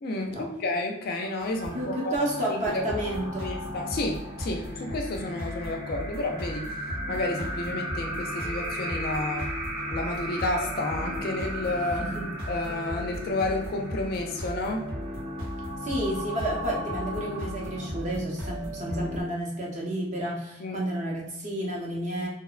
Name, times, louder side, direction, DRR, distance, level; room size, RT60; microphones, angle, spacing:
voice 1, 0.0-2.8 3.4-6.7 7.1-9.5 9.9-12.1 12.5-14.9 20.6-20.9, left 2 dB, 45° left, 2 dB, 0.3 m, -31 dB
sound 1, 1.0-18.4, right 1 dB, 5° right, 0.9 m, -38 dB
sound 2, 1.4-19.2, equal, 80° right, 0.9 m, -37 dB
voice 2, 1.7-3.6 12.0-12.3 15.8-22.3, right 1 dB, 35° right, -2 dB, 0.6 m, -31 dB
2.8 x 2.1 x 2.3 m, 0.86 s
head